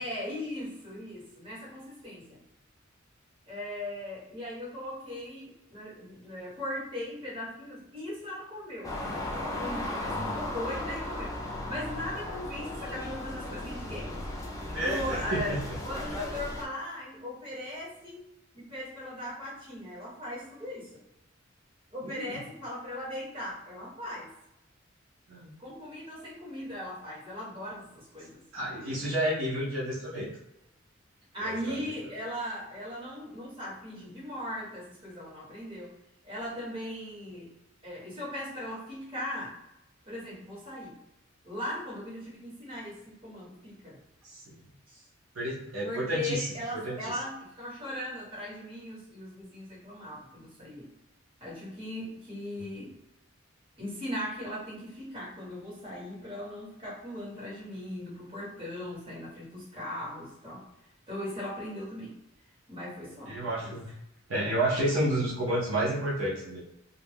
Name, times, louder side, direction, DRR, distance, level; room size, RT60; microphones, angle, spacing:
voice 1, 0.0-2.4 3.5-9.0 9.6-11.4 11.7-14.1 14.7-15.6 15.8-18.2 18.5-21.0 21.9-24.3 25.6-28.4 31.3-35.9 36.2-37.5 37.8-39.6 40.0-41.0 41.4-44.0 44.9-45.0 45.8-50.9 51.4-53.0 53.8-60.7 61.1-62.1 62.7-63.8, left 1 dB, 25° right, -9 dB, 1.4 m, -38 dB
sound 1, 8.8-16.6, left 1 dB, 15° left, 0.4 m, -36 dB
voice 2, 10.0-10.4 14.7-15.6 22.0-22.4 25.3-25.5 28.5-30.3 31.4-31.8 44.2-44.4 45.3-46.5 46.7-47.0 63.3-63.9 64.3-66.6, right 1 dB, 75° right, -6 dB, 0.7 m, -30 dB
2.4 x 2.2 x 3.4 m, 0.87 s
head